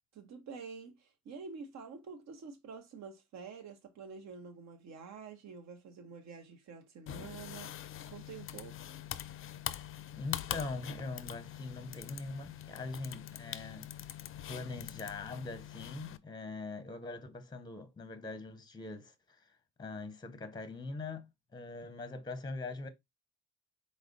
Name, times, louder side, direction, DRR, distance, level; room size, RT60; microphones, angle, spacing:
voice 1, 0.1-7.7 8.1-8.8, right 5 dB, 65° right, 0.9 m, -48 dB
sound 1, 7.1-16.2, left 11 dB, 45° left, 0.4 m, -43 dB
voice 2, 10.2-13.9 14.5-19.5 19.8-21.3 21.5-22.9, left 3 dB, 15° left, 0.7 m, -42 dB
4.7 x 2.1 x 3.8 m
cardioid pair, 90°, 30 cm